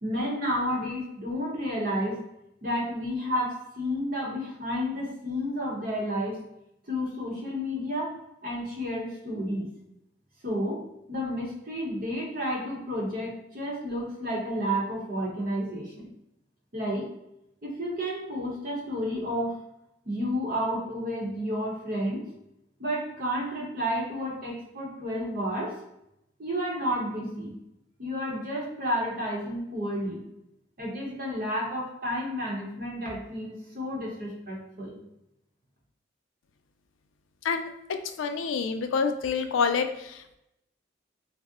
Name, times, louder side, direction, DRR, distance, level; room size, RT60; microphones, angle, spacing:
voice 1, 0.0-2.2 2.6-6.4 6.9-8.2 8.4-9.7 10.4-10.8 11.1-16.1 16.7-17.1 17.6-19.6 20.0-22.2 22.8-25.8 26.4-27.5 28.0-30.2 30.8-35.0, equal, 45° right, -2 dB, 0.8 m, -31 dB
voice 2, 38.2-40.4, left 5 dB, 85° left, 7 dB, 0.3 m, -27 dB
2.6 x 2.0 x 3.5 m, 0.84 s
head